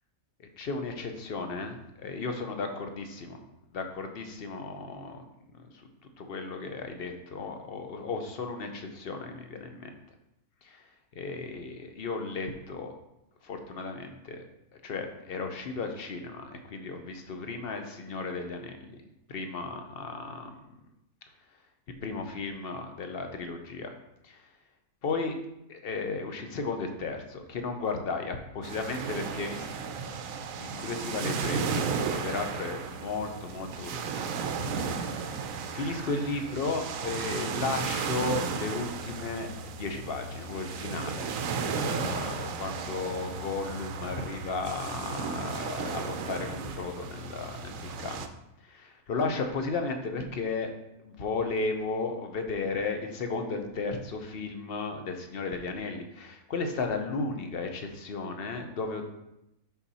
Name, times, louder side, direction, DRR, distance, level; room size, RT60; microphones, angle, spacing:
voice 1, 0.4-3.4 3.7-5.2 5.5-5.9 6.2-10.0 10.6-12.9 13.4-14.4 14.7-18.9 19.3-20.5 22.0-23.9 24.2-24.5 25.0-25.4 25.7-29.7 30.6-34.4 34.9-35.5 35.7-39.5 39.7-48.3 48.6-50.7 51.0-59.0, left 3 dB, 50° left, 5 dB, 0.8 m, -34 dB
sound 1, 28.6-48.3, right 5 dB, 70° right, 0.9 m, -34 dB
5.8 x 5.8 x 4.1 m, 0.87 s
omnidirectional pair, 1.6 m